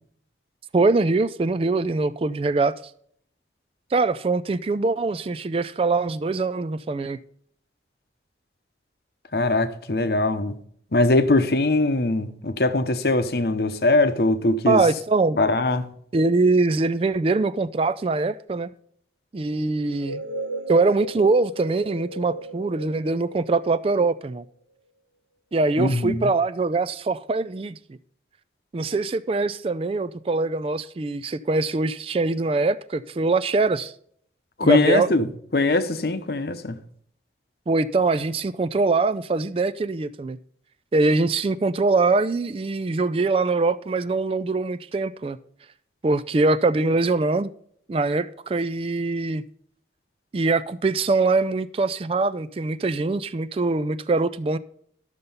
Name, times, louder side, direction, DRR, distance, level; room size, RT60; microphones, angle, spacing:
voice 1, 0.7-2.7 3.9-7.2 14.7-15.4 16.1-18.7 19.3-20.2 20.7-24.4 25.5-27.8 28.7-33.9 34.6-35.1 37.7-40.4 40.9-45.4 46.0-47.5 47.9-49.4 50.3-54.6, right 3 dB, 30° right, 0.3 m, -23 dB
voice 2, 9.3-10.5 10.9-14.8 15.4-15.9 25.8-26.3 34.6-35.3 35.5-36.8, left 2 dB, 60° left, 0.8 m, -21 dB
sound 1, 19.9-24.5, right 2 dB, 80° right, 1.4 m, -36 dB
12.0 x 6.7 x 5.5 m
head